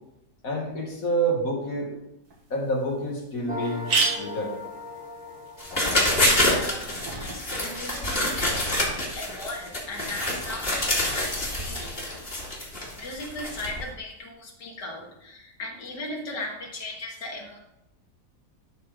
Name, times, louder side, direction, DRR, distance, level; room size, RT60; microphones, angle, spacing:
voice 1, 0.4-1.9 2.5-4.5, right 1 dB, 55° left, -2 dB, 2.5 m, -28 dB
sound 1, 2.3-2.4 2.9-3.0 3.2-3.3 3.6-7.4, right 4 dB, 65° right, 2.2 m, -32 dB
sound 2, 3.5-6.9, left 1 dB, 5° right, 1.3 m, -39 dB
sound 3, 5.6-13.8, left 1 dB, 35° left, 2.8 m, -27 dB
voice 2, 6.4-11.9 13.0-17.6, left 2 dB, 85° left, 0 dB, 2.4 m, -38 dB
12.0 x 4.5 x 5.1 m, 0.87 s
omnidirectional pair, 1.8 m